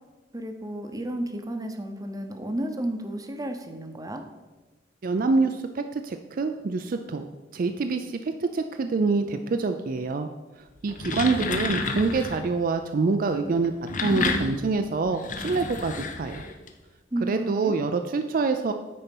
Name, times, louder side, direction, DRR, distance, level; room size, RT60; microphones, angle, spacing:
voice 1, 0.3-4.2 17.1-17.8, right 1 dB, 20° right, 6 dB, 0.8 m, -32 dB
voice 2, 5.0-7.3 7.5-8.1 8.5-10.3 10.8-13.7 14.0-16.4 17.2-18.7, right 4 dB, 50° right, 7 dB, 0.4 m, -26 dB
sound 1, 10.8-12.5 13.6-16.7, left 3 dB, 45° left, 0.7 m, -30 dB
9.7 x 4.3 x 5.3 m, 1.2 s
head